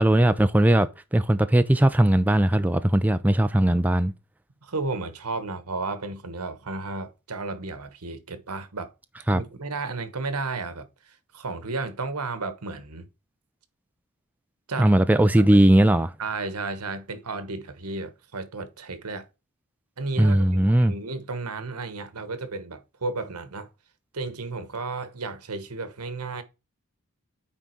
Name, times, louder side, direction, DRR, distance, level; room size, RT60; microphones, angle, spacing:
voice 1, 0.0-4.1 9.3-9.4 14.8-16.1 20.2-20.9, right 1 dB, 5° right, 0.3 m, -19 dB
voice 2, 4.6-8.9 9.3-13.1 14.7-14.9 16.2-19.3 20.0-23.7 24.1-26.4, right 3 dB, 85° right, 1.2 m, -33 dB
9.1 x 3.7 x 4.5 m
head